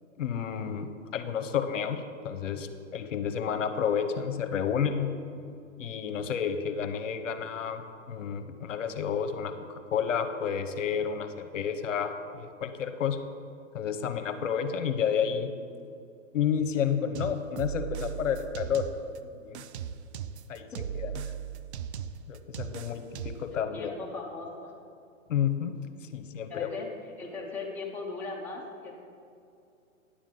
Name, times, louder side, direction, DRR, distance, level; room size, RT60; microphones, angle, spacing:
voice 1, 0.2-5.1 5.8-13.2 13.7-15.5 16.3-18.9 19.2-19.6 20.5-20.7 21.0-21.1 22.3-23.9 25.3-25.8 26.1-26.7, left 7 dB, 70° left, 8 dB, 0.8 m, -30 dB
sound 1, 17.2-19.2 19.6-23.5, right 8 dB, 55° right, 0.5 m, -37 dB
voice 2, 23.5-24.7 26.5-26.9 27.2-29.0, left 3 dB, 5° left, -3 dB, 0.6 m, -38 dB
9.8 x 7.3 x 3.8 m, 2.5 s
hypercardioid pair, 140°, 40 cm